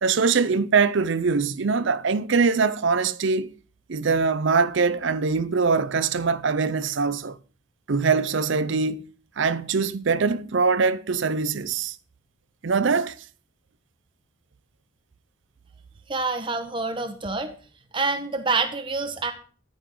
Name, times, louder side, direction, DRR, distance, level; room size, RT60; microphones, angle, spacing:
voice 1, 0.0-3.5 3.9-7.4 7.9-9.0 9.4-12.0 12.6-13.1, right 4 dB, 60° right, 0.5 m, -23 dB
voice 2, 16.1-17.5 17.9-19.3, right 3 dB, 25° right, 1.0 m, -27 dB
13.5 x 6.5 x 3.8 m
head